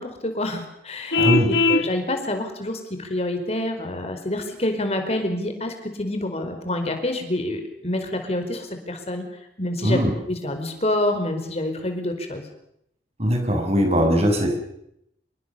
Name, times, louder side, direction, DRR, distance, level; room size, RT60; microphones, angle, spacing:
voice 1, 0.0-9.2 9.6-10.0 10.3-12.5, left 1 dB, 35° left, 6 dB, 4.8 m, -27 dB
Vehicle horn car horn honking, 1.1-1.9, left 3 dB, 80° left, 1.4 m, -19 dB
voice 2, 1.1-1.5 9.8-10.1 13.2-14.5, equal, 35° right, 4 dB, 6.7 m, -20 dB
27.5 x 22.5 x 6.9 m, 0.77 s
head